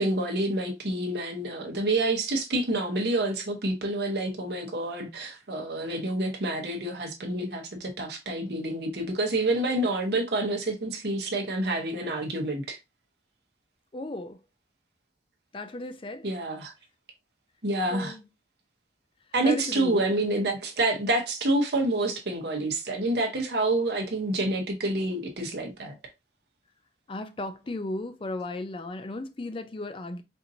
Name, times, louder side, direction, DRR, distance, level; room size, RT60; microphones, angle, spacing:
voice 1, 0.0-12.8 16.2-16.7 17.6-18.2 19.3-25.9, right 2 dB, 60° right, 0.9 m, -28 dB
voice 2, 13.9-14.4 15.5-16.3 17.9-18.2 19.4-20.0 27.1-30.2, left 2 dB, 30° left, 0.4 m, -35 dB
4.4 x 2.6 x 2.7 m
head